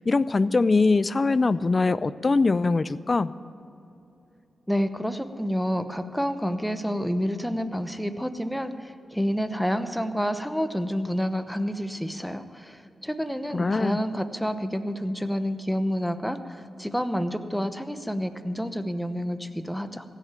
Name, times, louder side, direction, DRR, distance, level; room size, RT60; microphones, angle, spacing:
voice 1, 0.0-3.3 13.5-14.0, left 3 dB, 40° left, 17 dB, 0.4 m, -22 dB
voice 2, 4.7-20.0, equal, ahead, 9 dB, 0.9 m, -29 dB
16.0 x 6.6 x 9.0 m, 2.8 s
cardioid pair, 60°, 0 cm